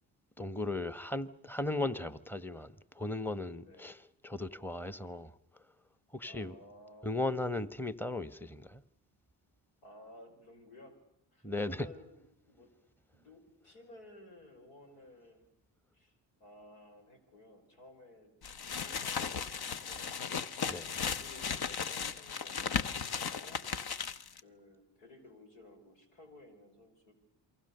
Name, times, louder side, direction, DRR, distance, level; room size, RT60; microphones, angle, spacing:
voice 1, 0.4-4.0 4.2-5.3 6.1-6.5 7.0-8.8 11.4-11.9 20.7-20.8, left 2 dB, 5° left, 1.1 m, -36 dB
voice 2, 3.6-3.9 6.3-7.2 9.8-11.0 11.3-12.7 13.1-15.5 15.9-16.1 16.4-18.3 18.7-20.1 20.8-23.7 23.9-27.1, left 1 dB, 90° left, 5.3 m, -56 dB
sound 1, 18.4-24.4, left 6 dB, 55° left, 1.1 m, -36 dB
27.5 x 24.0 x 6.7 m
supercardioid pair, 55°, 45 cm